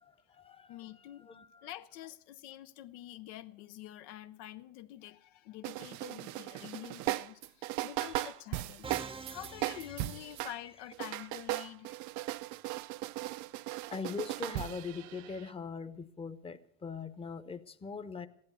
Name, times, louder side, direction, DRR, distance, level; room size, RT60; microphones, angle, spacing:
voice 1, 0.0-0.9 1.3-1.7 13.9-18.3, left 5 dB, 15° left, 0.8 m, -41 dB
voice 2, 0.7-1.3 1.6-11.9, left 13 dB, 85° left, 0.7 m, -47 dB
sound 1, 5.6-10.6 10.9-15.5, right 17 dB, 60° right, 0.5 m, -37 dB
Musical instrument, 8.8-10.9, right 4 dB, 15° right, 0.7 m, -47 dB
15.5 x 11.0 x 6.8 m
supercardioid pair, 105°, 33 cm